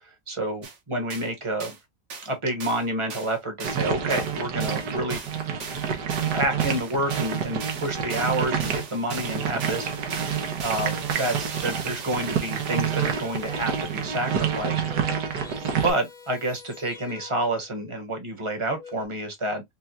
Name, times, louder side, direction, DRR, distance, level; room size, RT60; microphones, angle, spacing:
voice 1, 0.0-1.7 2.2-5.2 6.3-15.1 15.7-19.6, right 1 dB, 20° right, 1.0 m, -29 dB
sound 1, 0.6-0.8 1.1-1.3 1.6-1.8 2.1-2.3 2.6-2.9 3.1-14.6, right 5 dB, 50° right, 1.2 m, -39 dB
sound 2, 3.6-15.9, right 7 dB, 80° right, 1.6 m, -28 dB
sound 3, 13.0-13.9 14.6-17.8 18.5-19.1, left 5 dB, 30° left, 1.1 m, -46 dB
5.5 x 2.3 x 2.8 m
omnidirectional pair, 1.8 m